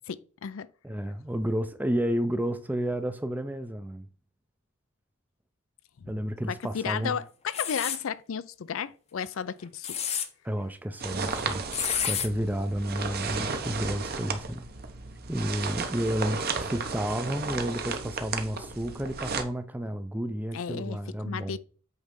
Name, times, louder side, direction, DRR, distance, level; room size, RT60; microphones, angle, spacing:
voice 1, 0.1-0.7 6.7-10.0 20.5-21.0 21.2-21.6, left 7 dB, 65° left, 0.4 m, -33 dB
voice 2, 0.8-4.1 6.1-7.2 10.4-11.6 12.0-14.6 15.3-21.6, equal, 10° right, 0.5 m, -31 dB
sound 1, 7.5-8.0 9.6-10.3 11.7-12.3, left 8 dB, 30° left, 0.7 m, -29 dB
sound 2, 11.0-19.4, right 4 dB, 45° right, 0.9 m, -34 dB
8.2 x 3.3 x 5.3 m
head